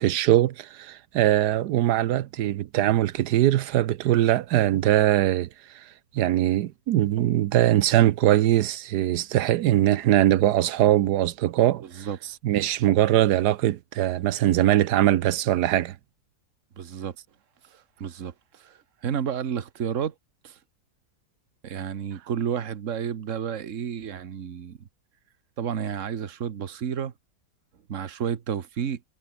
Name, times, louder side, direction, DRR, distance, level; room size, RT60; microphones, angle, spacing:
voice 1, 0.0-12.1 12.4-15.9, right 13 dB, 85° right, 1.3 m, -22 dB
voice 2, 11.8-12.2 16.8-17.2 17.6-20.1 20.4-20.6 21.6-24.9 25.6-27.1 27.9-29.0, right 8 dB, 55° right, 1.5 m, -31 dB
omnidirectional pair, 1.7 m